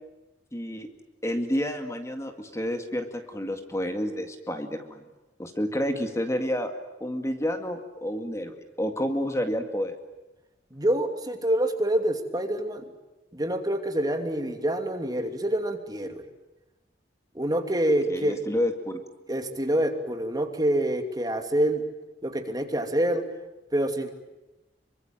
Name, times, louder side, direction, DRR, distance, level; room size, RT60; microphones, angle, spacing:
voice 1, 0.5-0.9 1.2-5.0 5.4-6.7 7.0-10.0 18.1-19.0, equal, 15° left, 6 dB, 2.1 m, -29 dB
voice 2, 10.7-12.8 13.3-16.3 17.3-18.4 19.3-21.8 22.2-23.3 23.7-24.1, right 1 dB, 20° right, 6 dB, 2.8 m, -26 dB
26.5 x 24.5 x 9.1 m, 1.0 s
head